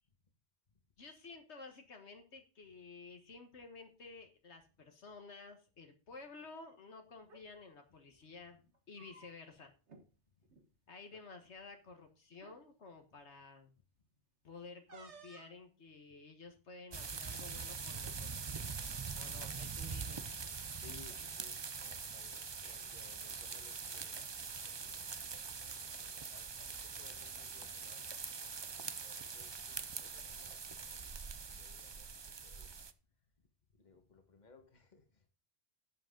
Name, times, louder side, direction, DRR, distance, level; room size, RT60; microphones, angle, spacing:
voice 1, 1.0-9.7 10.9-13.7 14.4-18.7 19.1-20.3, left 4 dB, 75° left, 1.7 m, -53 dB
sound 1, 7.2-7.4 8.7-9.6 9.9-10.0 10.4-10.7 11.6-11.7 12.3-12.6 14.9-15.6, right 4 dB, 75° right, 1.9 m, -57 dB
sound 2, 16.9-32.9, right 5 dB, 35° right, 0.4 m, -43 dB
voice 2, 19.2-19.7 20.5-25.1 26.0-32.9 33.4-33.5 33.7-35.3, left 4 dB, 40° left, 1.7 m, -63 dB
11.0 x 7.8 x 3.8 m
omnidirectional pair, 1.2 m